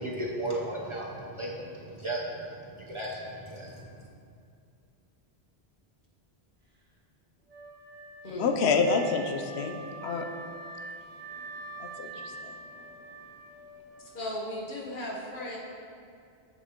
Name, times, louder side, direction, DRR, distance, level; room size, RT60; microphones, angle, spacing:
voice 1, 0.0-4.1, right 1 dB, 35° right, -3 dB, 0.7 m, -35 dB
Wind instrument woodwind instrument, 7.5-14.5, right 3 dB, 10° right, 1.3 m, -45 dB
voice 2, 8.4-10.3 11.8-12.5, left 4 dB, 85° left, 5 dB, 0.8 m, -28 dB
voice 3, 14.1-15.6, left 1 dB, 55° left, -3 dB, 1.2 m, -36 dB
7.5 x 6.7 x 2.9 m, 2.3 s
omnidirectional pair, 1.1 m